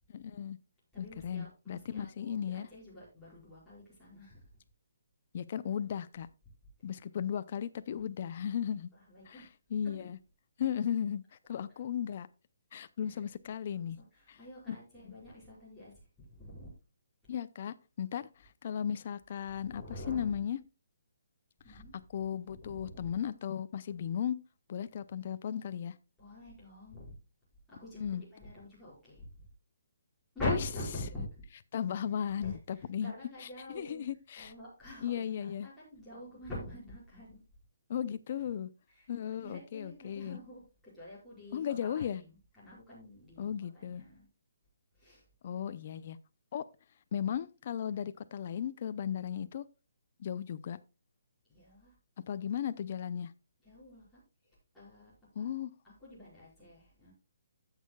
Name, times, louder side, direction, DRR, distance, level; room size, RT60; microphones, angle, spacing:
voice 1, 0.1-0.6 1.0-2.7 5.3-6.3 6.8-8.9 9.3-10.2 10.6-11.2 11.5-12.3 12.7-14.0 14.3-14.4 14.7-14.8 17.3-18.3 18.6-20.6 21.7-21.8 22.1-24.4 24.7-25.9 28.0-28.2 30.4-30.6 31.7-33.1 33.4-34.5 35.0-35.7 37.9-38.7 39.1-40.4 41.5-42.2 43.4-44.0 45.4-46.2 46.5-46.6 47.1-49.7 50.2-50.8 52.3-53.3 55.4-55.7, left 9 dB, 40° left, 0.5 m, -36 dB
voice 2, 0.9-4.4 8.9-9.5 9.8-9.9 13.1-13.2 14.1-16.7 19.6-20.4 21.6-21.9 22.6-23.2 26.2-27.2 27.7-29.5 30.3-31.4 32.2-34.0 34.3-37.4 38.9-40.6 40.9-44.3 44.9-45.2 51.5-51.9 53.6-54.2 54.7-55.5 55.8-57.1, left 1 dB, 5° left, 5.1 m, -45 dB
15.5 x 6.5 x 2.3 m
hypercardioid pair, 170°, 0 cm